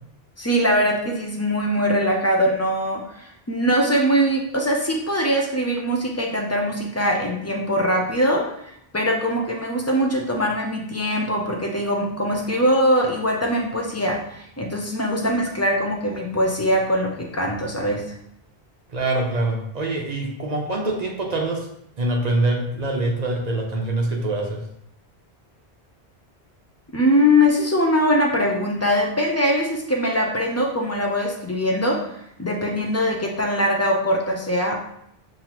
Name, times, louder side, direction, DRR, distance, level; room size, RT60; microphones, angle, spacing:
voice 1, 0.4-8.5 8.9-18.1 26.9-32.1 32.4-34.8, equal, 25° left, 0 dB, 0.4 m, -22 dB
voice 2, 18.9-21.7 22.0-24.6, right 2 dB, 45° right, -1 dB, 0.8 m, -24 dB
5.4 x 2.7 x 3.0 m, 0.74 s
omnidirectional pair, 1.1 m